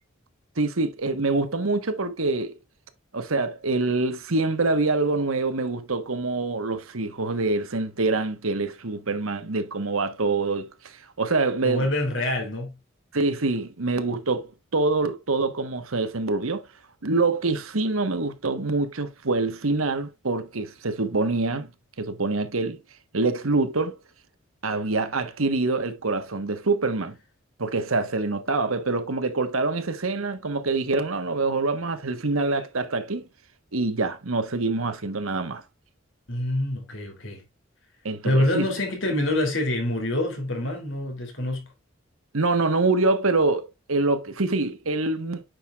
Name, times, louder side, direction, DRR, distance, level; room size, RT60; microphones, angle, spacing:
voice 1, 0.6-2.6 3.1-11.9 13.1-16.7 17.0-21.7 22.0-22.8 23.1-24.0 24.6-27.2 27.6-33.2 33.7-35.6 38.0-38.6 42.3-45.4, right 3 dB, 85° right, 1.3 m, -25 dB
voice 2, 11.6-12.8 36.3-37.4 38.2-41.7, left 1 dB, 65° left, 3.3 m, -26 dB
9.2 x 6.5 x 2.4 m
head